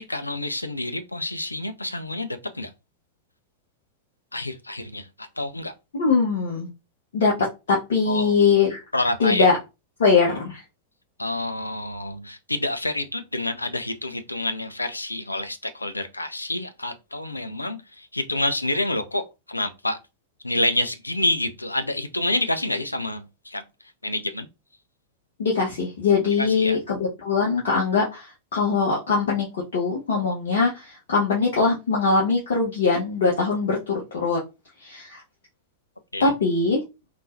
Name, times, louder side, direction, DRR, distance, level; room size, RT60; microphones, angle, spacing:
voice 1, 0.0-2.7 4.3-5.1 5.4-5.7 8.1-8.3 8.9-9.5 11.2-20.0 20.4-23.6 24.0-24.5 26.4-26.8 36.1-36.3, left 1 dB, 85° left, 0.4 m, -28 dB
voice 2, 5.9-6.7 7.1-7.3 7.7-8.8 9.2-9.6 10.0-10.6 25.4-34.4 34.8-35.2 36.2-36.8, left 4 dB, 60° left, 1.0 m, -22 dB
3.7 x 3.0 x 2.5 m
figure-of-eight pair, 90°, 0 cm